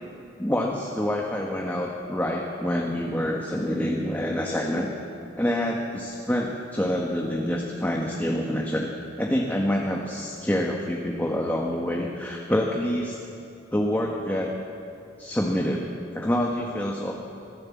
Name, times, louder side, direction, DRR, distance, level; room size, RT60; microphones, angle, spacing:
voice 1, 0.4-4.9 5.4-8.9 9.2-13.2 13.7-14.5 15.2-17.1, equal, 10° left, -1 dB, 1.5 m, -27 dB
25.5 x 15.5 x 7.4 m, 2.6 s
head